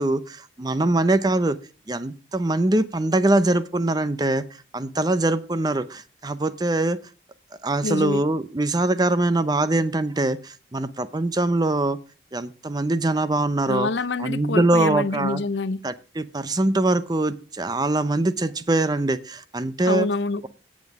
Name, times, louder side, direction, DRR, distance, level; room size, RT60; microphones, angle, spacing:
voice 1, 0.0-1.6 1.9-4.4 4.7-7.0 7.6-12.0 12.3-13.9 14.2-15.4 15.8-20.1, right 2 dB, 20° right, 0.6 m, -23 dB
voice 2, 7.8-8.2 13.7-15.8 19.9-20.4, left 3 dB, 85° left, 0.6 m, -26 dB
17.5 x 7.4 x 3.6 m
head